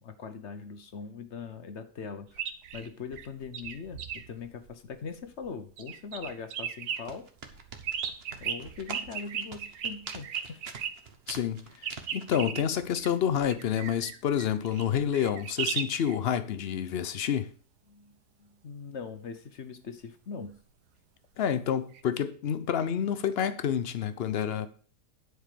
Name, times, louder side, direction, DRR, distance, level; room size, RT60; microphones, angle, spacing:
voice 1, 0.0-2.4 2.7-7.5 8.4-10.6 17.9-20.6, left 5 dB, 50° left, 1.0 m, -41 dB
sound 1, 2.3-5.5 5.8-7.0 7.5-10.9 11.8-16.1 21.9-22.0, right 8 dB, 75° right, 1.4 m, -36 dB
sound 2, 6.8-12.4, right 5 dB, 40° right, 1.1 m, -44 dB
voice 2, 11.3-17.5 21.4-24.7, left 9 dB, 75° left, 0.5 m, -29 dB
10.5 x 4.8 x 6.7 m
omnidirectional pair, 1.8 m